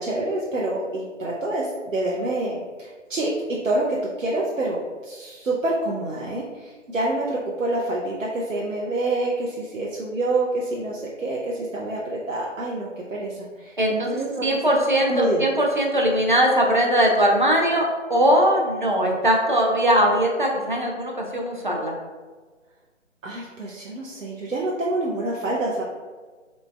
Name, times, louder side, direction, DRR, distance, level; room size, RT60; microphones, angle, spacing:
voice 1, 0.0-14.8 15.1-15.4 23.2-25.8, right 2 dB, 85° right, -4 dB, 0.7 m, -27 dB
voice 2, 13.8-14.1 14.4-17.8 18.1-21.9, equal, 40° right, 0 dB, 0.5 m, -20 dB
4.0 x 3.2 x 2.2 m, 1.4 s
figure-of-eight pair, 150°, 38 cm